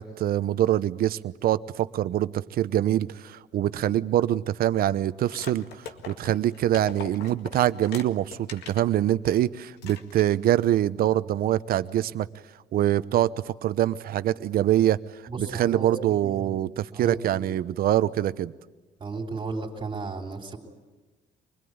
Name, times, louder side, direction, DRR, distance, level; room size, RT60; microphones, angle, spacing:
voice 1, 0.0-5.7 6.1-12.3 12.7-15.0 15.4-18.5, right 12 dB, 60° right, 15 dB, 0.9 m, -24 dB
sound 1, 5.3-8.9 9.3-9.4 9.8-10.5, left 7 dB, 80° left, 2.0 m, -42 dB
voice 2, 15.3-17.6 19.0-20.6, right 3 dB, 30° right, 1 dB, 3.7 m, -35 dB
25.0 x 20.5 x 9.6 m, 1.2 s
cardioid pair, 110°, 17 cm